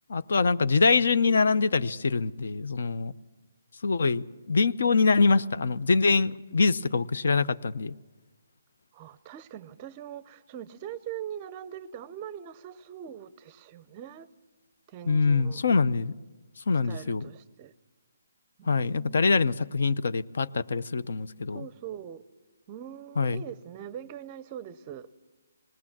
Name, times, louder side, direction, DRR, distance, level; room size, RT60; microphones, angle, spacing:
voice 1, 0.1-3.1 3.8-7.9 15.1-16.1 16.7-17.2 18.6-21.6 23.2-23.4, left 4 dB, 65° left, 0.6 m, -24 dB
voice 2, 8.9-14.3 14.9-15.6 16.8-17.7 18.6-19.4 21.5-22.2 22.7-25.1, right 10 dB, 25° right, 0.5 m, -42 dB
20.0 x 18.0 x 7.3 m
hypercardioid pair, 165°, 0 cm